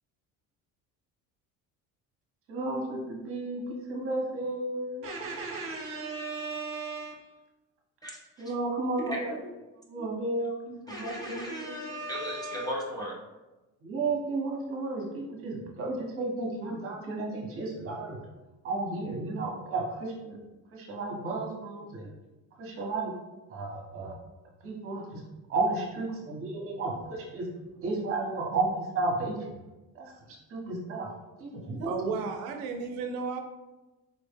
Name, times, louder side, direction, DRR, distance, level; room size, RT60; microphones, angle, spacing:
voice 1, 2.5-7.3 8.4-9.3 9.9-11.9 13.8-18.2 18.6-20.4 20.7-22.1 22.6-23.1 23.5-24.1 24.6-25.2 25.5-27.5 27.8-29.4 29.9-31.1 31.4-31.9, right 3 dB, 40° right, -1 dB, 0.9 m, -33 dB
voice 2, 8.0-8.4 9.0-9.4 10.0-10.1 10.9-13.1, equal, 10° left, -4 dB, 0.6 m, -36 dB
voice 3, 31.9-33.4, right 5 dB, 90° right, 5 dB, 0.5 m, -33 dB
4.2 x 2.0 x 3.4 m, 1.1 s
cardioid pair, 145°, 34 cm